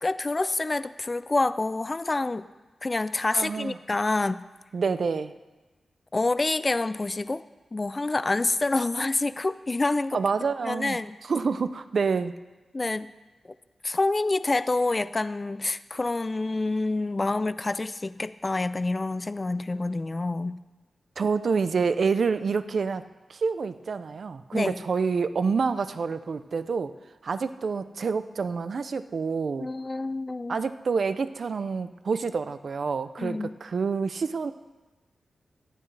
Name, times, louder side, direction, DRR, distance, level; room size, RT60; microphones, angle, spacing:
voice 1, 0.0-2.5 2.8-4.4 6.1-7.4 7.7-10.2 10.6-11.2 12.7-13.1 13.8-20.6 24.5-24.8 29.6-30.6 33.2-33.5, left 2 dB, 25° left, 14 dB, 0.3 m, -27 dB
voice 2, 3.3-3.8 4.7-5.3 10.1-11.0 11.3-12.4 21.2-26.9 27.2-29.7 30.5-34.5, right 5 dB, 55° right, 12 dB, 0.5 m, -27 dB
17.5 x 11.5 x 3.3 m, 1.2 s
wide cardioid pair, 155°, 0 cm